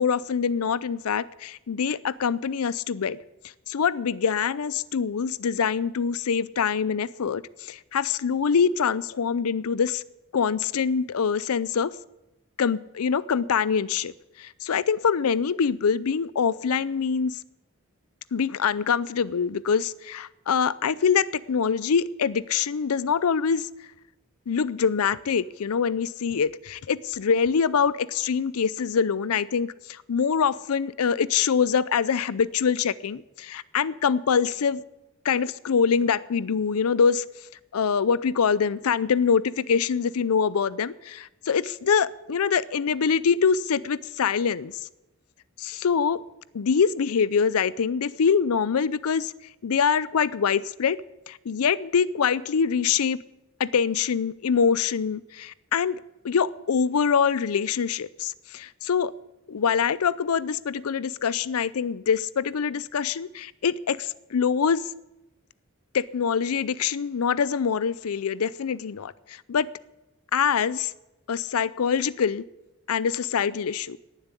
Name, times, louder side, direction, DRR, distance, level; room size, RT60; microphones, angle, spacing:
voice 1, 0.0-3.2 3.7-10.0 10.3-11.9 12.6-14.1 14.4-17.4 18.3-23.9 24.5-34.8 35.2-37.2 37.7-44.9 45.6-46.2 46.5-49.3 49.6-51.0 51.3-53.2 53.6-56.0 56.2-59.1 59.5-64.9 65.9-69.7 70.3-70.9 71.3-72.4 72.9-74.0, left 6 dB, 85° left, 20 dB, 0.5 m, -24 dB
18.5 x 7.3 x 8.2 m, 0.97 s
head